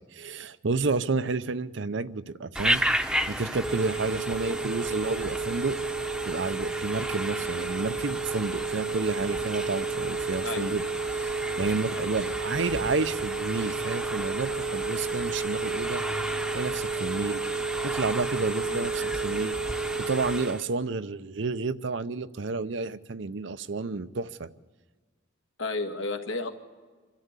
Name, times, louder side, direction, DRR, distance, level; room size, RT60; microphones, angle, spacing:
voice 1, 0.0-5.8 6.3-10.8 11.1-16.0 16.5-17.4 17.8-24.5, right 3 dB, 65° right, 14 dB, 0.7 m, -31 dB
Telephone, 2.6-20.7, right 3 dB, 5° right, 0.9 m, -30 dB
voice 2, 11.9-12.3 18.7-18.9 25.6-26.5, left 3 dB, 75° left, 5 dB, 1.8 m, -33 dB
26.0 x 13.0 x 8.2 m, 1.4 s
head